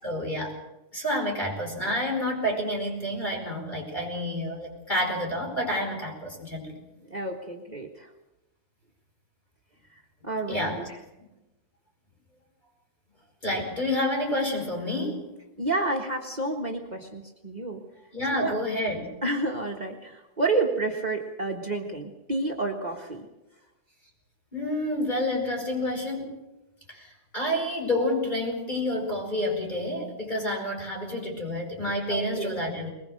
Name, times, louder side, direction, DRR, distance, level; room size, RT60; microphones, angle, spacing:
voice 1, 0.0-0.5 0.9-6.7 10.5-10.9 13.4-15.2 18.1-19.0 24.5-26.3 26.9-32.9, left 1 dB, 15° left, 1 dB, 5.1 m, -29 dB
voice 2, 7.1-8.1 10.2-10.6 15.6-17.8 18.3-18.5 19.2-23.3 32.1-32.6, right 2 dB, 50° right, 0 dB, 0.4 m, -30 dB
21.5 x 21.0 x 6.5 m, 0.99 s
omnidirectional pair, 3.7 m